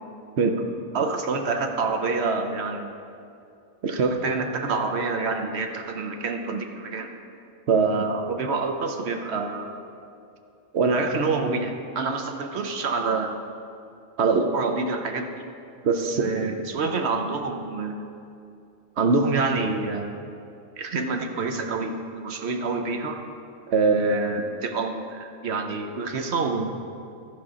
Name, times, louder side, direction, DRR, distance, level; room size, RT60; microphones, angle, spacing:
voice 1, 0.9-2.9 3.8-7.1 7.7-9.8 10.7-13.4 14.2-15.4 15.8-18.0 19.0-20.2 20.8-23.2 23.7-26.7, right 4 dB, 60° right, 5 dB, 1.0 m, -26 dB
14.0 x 5.5 x 4.9 m, 2.5 s
omnidirectional pair, 1.4 m